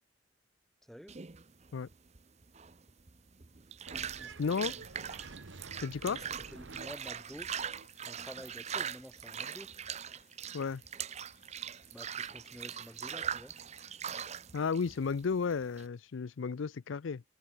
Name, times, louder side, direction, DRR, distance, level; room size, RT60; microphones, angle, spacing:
voice 1, 0.8-1.2 4.2-4.8 6.1-7.5 8.1-9.8 11.9-13.6, equal, ahead, 3.5 m, -50 dB
Waves - Bathtub (Circular Waves), 1.1-15.8, right 8 dB, 30° right, 0.7 m, -41 dB
sound 1, 3.9-7.9, right 4 dB, 65° right, 1.0 m, -51 dB
sound 2, 4.1-14.1, left 7 dB, 40° left, 5.0 m, -68 dB
voice 2, 4.4-4.7 5.8-6.2 10.5-10.8 14.5-17.2, left 5 dB, 70° left, 0.5 m, -33 dB
head